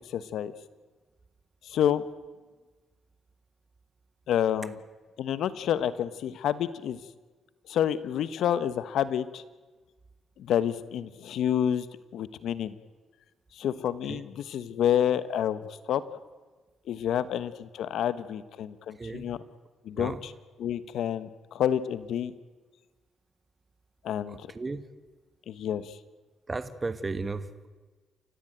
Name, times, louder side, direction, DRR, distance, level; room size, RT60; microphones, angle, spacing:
voice 1, 0.0-0.5 1.6-2.0 4.3-4.8 5.2-7.0 7.7-9.4 10.4-11.9 12.1-12.7 13.5-15.6 15.9-16.0 16.9-19.4 19.8-20.3 20.6-22.3 24.0-24.5 25.5-26.0, left 10 dB, 75° left, 14 dB, 1.2 m, -28 dB
voice 2, 19.0-19.4 19.9-20.2 24.3-24.8 26.5-27.7, right 3 dB, 25° right, 12 dB, 1.5 m, -35 dB
29.5 x 15.0 x 9.2 m, 1.3 s
cardioid pair, 90°, 0 cm